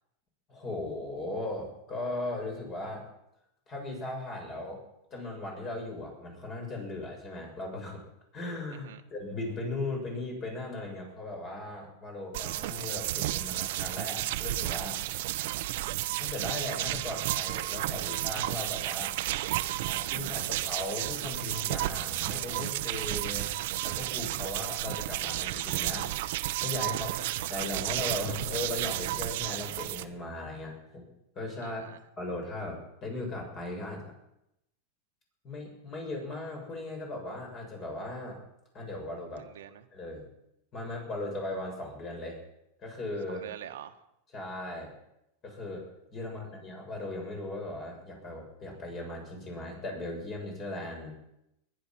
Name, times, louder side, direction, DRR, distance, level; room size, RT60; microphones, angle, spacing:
voice 1, 0.5-3.0 3.7-4.8 5.1-8.0 8.3-15.0 16.2-19.2 19.9-23.5 23.8-27.1 27.5-31.1 31.3-31.8 32.2-34.0 35.4-38.4 38.7-39.4 39.9-40.3 40.7-42.4 42.8-43.5 44.3-44.9 45.4-45.8 46.1-51.1, left 2 dB, 30° left, 1 dB, 6.6 m, -38 dB
voice 2, 8.7-9.0 15.3-15.8 26.9-27.3 31.6-32.0 39.4-39.9 43.3-44.0 46.2-46.6, right 10 dB, 90° right, 6 dB, 1.4 m, -46 dB
sound 1, 12.3-30.0, right 15 dB, 65° right, 0.9 m, -32 dB
21.5 x 10.0 x 6.1 m, 0.84 s
supercardioid pair, 150°, 0 cm